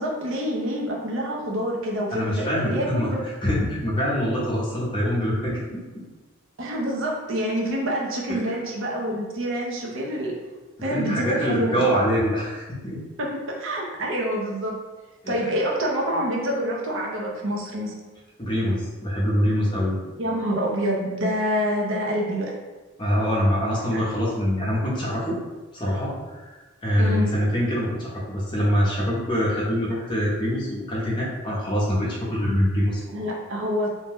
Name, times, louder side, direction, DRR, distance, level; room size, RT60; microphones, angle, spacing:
voice 1, 0.0-3.2 6.6-10.3 10.8-11.9 13.2-14.8 15.3-17.9 20.2-22.5 23.8-24.0 27.0-27.3 33.1-33.9, equal, 60° right, -2 dB, 0.5 m, -27 dB
voice 2, 2.1-6.0 8.3-8.5 10.9-13.0 15.2-15.5 18.4-20.0 23.0-25.4 25.7-26.5 26.8-33.0, equal, 20° left, -6 dB, 0.6 m, -24 dB
2.6 x 2.1 x 3.4 m, 1.2 s
head